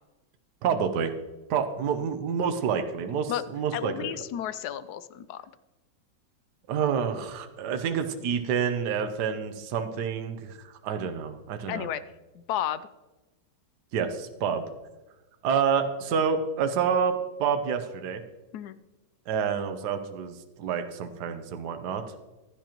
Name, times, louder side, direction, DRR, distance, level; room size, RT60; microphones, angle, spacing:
voice 1, 0.6-1.1 1.5-4.1 6.7-11.9 13.9-14.6 15.4-17.1 17.4-18.2 19.3-22.0, right 7 dB, 70° right, 7 dB, 1.4 m, -28 dB
voice 2, 3.7-5.4 11.7-12.0 12.3-12.8 18.5-18.8, left 11 dB, 70° left, 14 dB, 1.0 m, -32 dB
15.0 x 12.0 x 3.0 m, 1.1 s
omnidirectional pair, 1.9 m